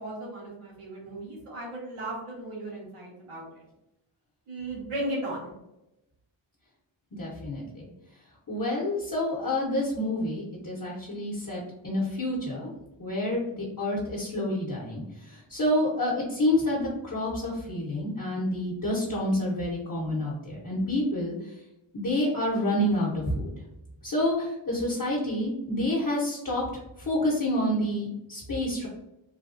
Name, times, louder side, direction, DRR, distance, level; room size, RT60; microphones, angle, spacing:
voice 1, 0.0-3.6 4.5-5.5, right 1 dB, 85° right, -5 dB, 1.4 m, -36 dB
voice 2, 7.1-7.9 8.5-12.7 13.0-21.5 21.9-23.5 24.0-26.6 27.0-28.9, left 1 dB, 40° left, -6 dB, 0.9 m, -28 dB
3.2 x 2.3 x 2.5 m, 0.87 s
wide cardioid pair, 90°, 50 cm